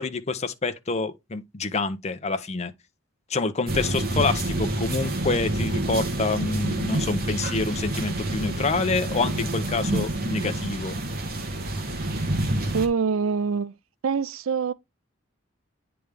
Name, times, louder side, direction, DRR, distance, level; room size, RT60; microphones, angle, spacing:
voice 1, 0.0-2.7 3.3-11.0, left 3 dB, 35° left, 0.6 m, -27 dB
sound 1, 3.7-12.9, right 1 dB, 50° right, 1.3 m, -28 dB
voice 2, 12.7-13.7 14.0-14.7, right 5 dB, 80° right, 0.4 m, -25 dB
9.3 x 3.4 x 3.3 m
head